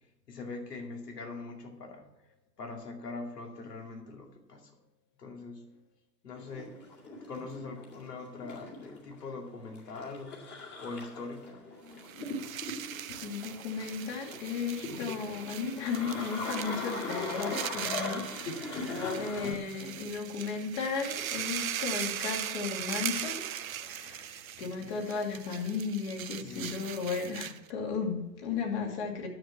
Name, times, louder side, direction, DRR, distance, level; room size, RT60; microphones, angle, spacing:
voice 1, 0.3-2.1 2.6-4.7 5.2-5.7 6.2-6.7 7.3-10.4 10.8-11.6 24.5-25.0 26.4-26.7, left 3 dB, 70° left, 2 dB, 2.5 m, -42 dB
sound 1, 6.4-19.5, left 3 dB, 20° left, 2.2 m, -40 dB
sound 2, 11.9-27.7, right 11 dB, 55° right, 0.7 m, -39 dB
voice 2, 13.2-23.5 23.8-29.3, left 5 dB, 40° left, 1 dB, 2.7 m, -35 dB
10.5 x 7.2 x 7.2 m, 0.96 s
figure-of-eight pair, 120°, 49 cm